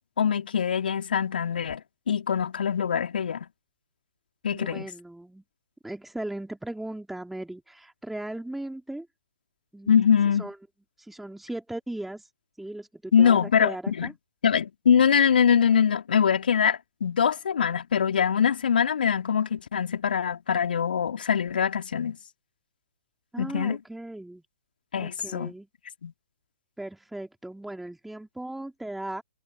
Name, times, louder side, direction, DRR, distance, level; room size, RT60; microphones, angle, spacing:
voice 1, 0.2-1.8 2.1-3.5 4.4-4.8 9.9-10.5 13.1-14.1 14.4-22.2 23.4-23.8 24.9-25.5 26.0-26.1, left 7 dB, 60° left, 3.1 m, -23 dB
voice 2, 4.5-5.4 5.8-9.1 9.7-10.6 11.0-12.3 12.6-14.1 23.3-24.4 24.9-25.7 26.8-29.2, right 1 dB, ahead, 3.4 m, -37 dB
figure-of-eight pair, 120°, 6 cm